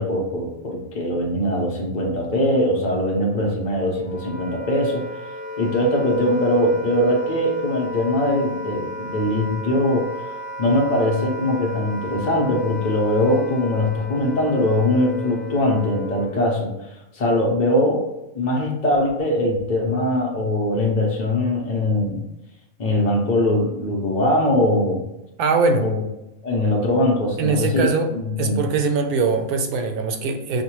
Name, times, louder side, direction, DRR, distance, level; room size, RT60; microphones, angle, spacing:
voice 1, 0.0-5.1 5.6-22.3 22.8-25.1 25.8-26.0 26.4-27.9 28.1-28.6, left 1 dB, 50° left, -1 dB, 0.5 m, -21 dB
Wind instrument woodwind instrument, 3.9-16.5, left 2 dB, 20° right, 0.9 m, -34 dB
voice 2, 25.4-25.9 27.4-28.1 28.4-30.6, right 4 dB, 85° right, 6 dB, 1.1 m, -21 dB
5.1 x 2.1 x 3.0 m, 0.91 s
omnidirectional pair, 1.5 m